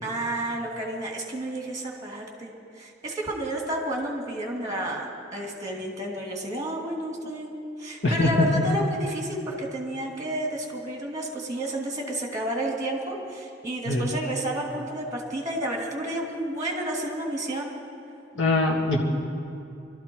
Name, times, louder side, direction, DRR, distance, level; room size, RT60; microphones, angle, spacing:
voice 1, 0.0-7.5 7.8-17.7, right 1 dB, 20° right, 0 dB, 2.6 m, -31 dB
voice 2, 18.4-19.0, left 2 dB, 90° left, 0 dB, 1.9 m, -22 dB
22.5 x 13.0 x 4.7 m, 2.6 s
head